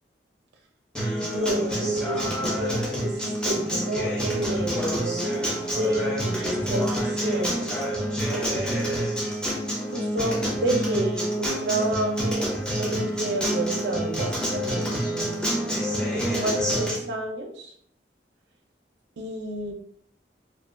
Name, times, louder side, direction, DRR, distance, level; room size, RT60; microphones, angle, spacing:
Acoustic guitar, 0.9-17.0, equal, 5° left, 0.4 m, -27 dB
voice 1, 1.2-7.7 8.3-8.9 9.9-15.8 16.1-17.7 19.2-19.7, right 1 dB, 70° right, 3 dB, 0.4 m, -30 dB
2.3 x 2.2 x 2.4 m, 0.64 s
head